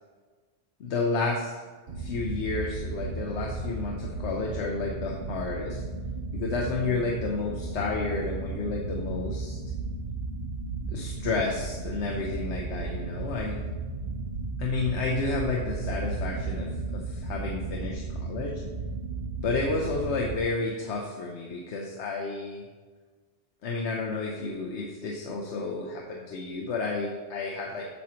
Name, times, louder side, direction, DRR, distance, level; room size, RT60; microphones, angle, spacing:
voice 1, 0.8-1.6 1.9-5.8 6.3-9.6 10.9-13.6 14.6-18.6 19.4-22.7 23.6-27.9, left 3 dB, 80° left, -1 dB, 1.0 m, -31 dB
sound 1, 1.9-20.4, right 3 dB, 55° right, 0.7 m, -34 dB
8.2 x 6.2 x 2.9 m, 1.4 s
omnidirectional pair, 1.2 m